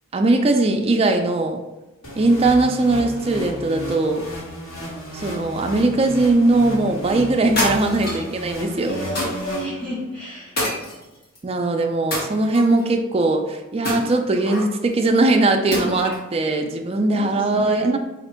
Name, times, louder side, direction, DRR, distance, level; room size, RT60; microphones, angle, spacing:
voice 1, 0.1-1.6 2.2-4.3 5.1-9.0 11.4-18.0, right 2 dB, 25° right, 3 dB, 0.3 m, -20 dB
sound 1, 2.0-10.2, right 1 dB, 80° left, 1.4 m, -33 dB
sound 2, 7.6-8.3 9.2-9.6 10.6-11.4 12.1-12.8 13.8-14.7 15.7-16.3, left 1 dB, 45° left, 1.3 m, -26 dB
voice 2, 8.8-10.5 17.1-18.0, equal, 5° left, -7 dB, 1.2 m, -31 dB
3.5 x 2.5 x 4.3 m, 1.0 s
head